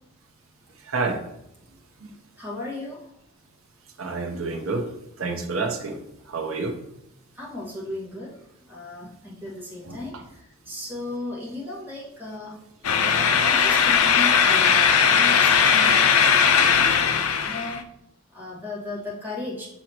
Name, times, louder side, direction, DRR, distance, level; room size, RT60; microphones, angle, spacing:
voice 1, 0.8-1.2 2.0-2.1 4.0-4.9 5.2-6.8 9.8-10.2, right 3 dB, 65° right, 4 dB, 0.9 m, -29 dB
voice 2, 2.4-3.1 7.4-8.4 8.7-12.6 13.0-16.9 17.4-17.8 18.3-19.7, left 2 dB, 10° right, -6 dB, 1.8 m, -36 dB
sound 1, 12.8-17.8, left 7 dB, 80° left, 0.5 m, -18 dB
6.3 x 5.7 x 3.0 m, 0.81 s
head